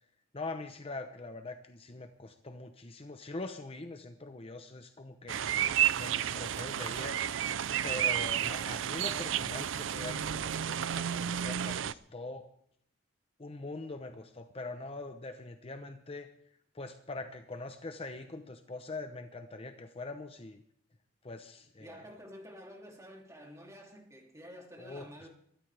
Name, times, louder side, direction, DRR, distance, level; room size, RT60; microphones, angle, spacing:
voice 1, 0.3-5.4 6.0-7.2 7.8-12.5 13.4-16.3 16.7-20.6 21.2-22.0 24.8-25.3, left 2 dB, 30° left, 0.8 m, -43 dB
sound 1, 5.3-11.9, right 10 dB, 85° right, 0.4 m, -31 dB
voice 2, 21.8-25.3, equal, 15° right, 2.9 m, -50 dB
23.0 x 12.5 x 3.4 m
head